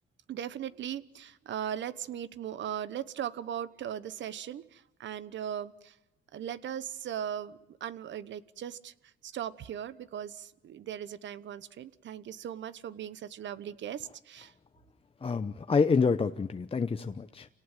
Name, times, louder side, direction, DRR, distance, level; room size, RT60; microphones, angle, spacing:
voice 1, 0.3-6.0 6.3-8.9 9.2-14.5, right 9 dB, 70° right, 16 dB, 1.2 m, -38 dB
voice 2, 15.2-17.5, left 5 dB, 30° left, 8 dB, 0.9 m, -27 dB
27.5 x 18.5 x 9.1 m, 0.98 s
cardioid pair, 90°, 20 cm